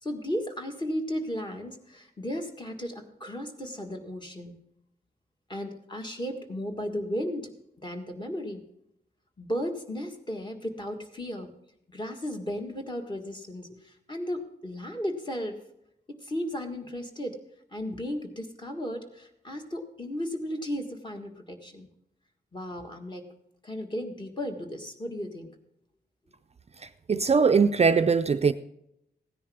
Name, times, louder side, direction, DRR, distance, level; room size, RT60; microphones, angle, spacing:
voice 1, 0.0-4.5 5.5-7.5 7.8-8.6 9.4-11.5 11.9-15.6 16.2-17.4 17.7-21.9 22.5-23.3 23.6-25.5, equal, 25° left, 1.6 m, -35 dB
voice 2, 27.1-28.5, right 5 dB, 40° right, 0.4 m, -21 dB
16.0 x 10.0 x 3.6 m
wide cardioid pair, 140°, 18 cm